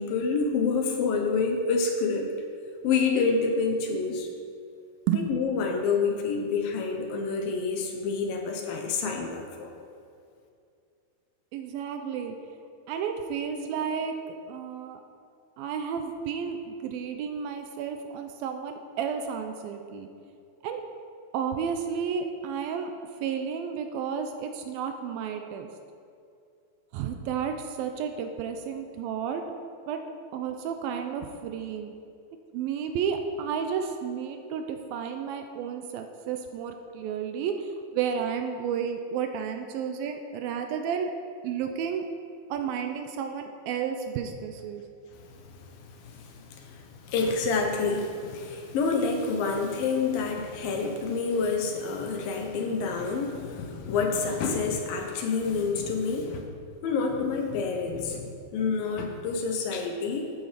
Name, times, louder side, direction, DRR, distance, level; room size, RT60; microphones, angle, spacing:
voice 1, 0.0-2.3 2.8-4.3 5.1-9.7 45.1-56.5 56.8-60.3, left 4 dB, 70° left, 2 dB, 2.7 m, -28 dB
voice 2, 11.5-12.4 12.9-15.0 15.6-20.1 20.6-20.8 21.3-22.9 23.2-25.7 26.9-29.5 29.9-30.0 30.3-31.9 32.5-41.1 41.4-42.1 42.5-44.8, right 7 dB, 80° right, 5 dB, 2.3 m, -32 dB
13.0 x 8.8 x 5.1 m, 2.4 s
omnidirectional pair, 4.5 m